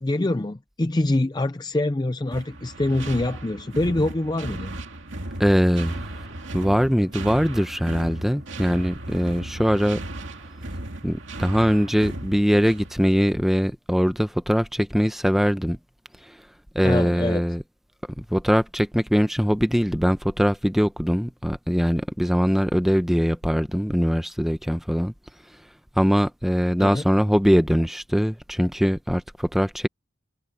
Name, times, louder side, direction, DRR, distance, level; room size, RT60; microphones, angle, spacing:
voice 1, 0.0-4.8 16.8-17.4 26.8-27.0, left 2 dB, 20° left, 0.5 m, -25 dB
sound 1, 2.3-13.1, right 1 dB, 65° right, 2.4 m, -36 dB
voice 2, 5.4-6.1 6.5-10.0 11.0-15.8 16.7-17.6 18.2-25.1 26.0-29.9, equal, ahead, 0.9 m, -22 dB
head